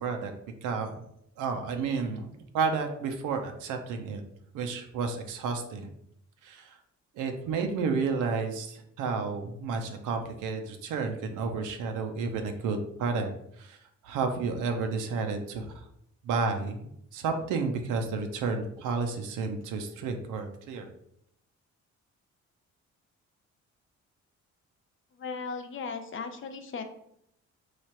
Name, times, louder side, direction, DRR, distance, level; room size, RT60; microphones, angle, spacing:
voice 1, 0.0-0.3 0.6-1.1 1.4-2.3 2.5-4.2 4.5-5.9 6.4-6.8 7.2-13.3 13.6-13.8 14.0-15.7 16.2-20.9, right 4 dB, 85° right, 5 dB, 0.6 m, -31 dB
voice 2, 25.1-26.8, left 5 dB, 40° left, 6 dB, 0.6 m, -37 dB
3.1 x 2.4 x 4.3 m, 0.73 s
cardioid pair, 90°, 30 cm